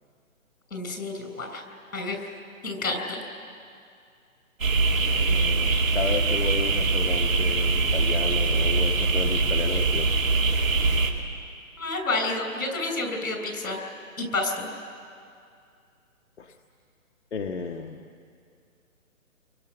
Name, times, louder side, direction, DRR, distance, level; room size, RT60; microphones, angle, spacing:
voice 1, 0.7-1.6 1.9-2.2 2.6-3.2 11.8-13.8 14.2-14.7, left 2 dB, 75° left, 4 dB, 6.2 m, -29 dB
sound 1, 4.6-11.1, right 3 dB, 70° right, 2.9 m, -23 dB
voice 2, 5.0-10.4 16.4-16.5 17.3-18.1, left 5 dB, 50° left, 3 dB, 1.3 m, -33 dB
29.5 x 23.0 x 6.4 m, 2.4 s
hypercardioid pair, 170°, 42 cm